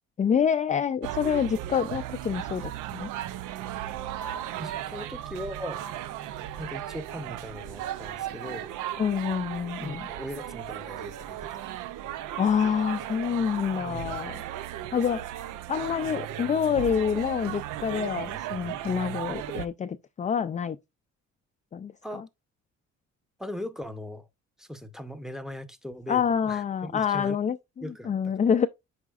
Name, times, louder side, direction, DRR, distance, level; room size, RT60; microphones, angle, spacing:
voice 1, 0.2-3.1 9.0-10.1 12.3-14.4 14.9-20.8 21.7-22.2 26.1-28.7, left 7 dB, 25° left, 0.3 m, -27 dB
sound 1, 1.0-19.7, right 12 dB, 90° right, 0.6 m, -36 dB
voice 2, 4.6-5.8 6.6-8.7 9.8-11.6 13.8-14.2 14.6-14.7 22.0-22.2 23.4-24.3 24.6-27.4 27.8-28.3, left 1 dB, ahead, 0.8 m, -39 dB
8.3 x 5.0 x 2.4 m
cardioid pair, 90°, 30 cm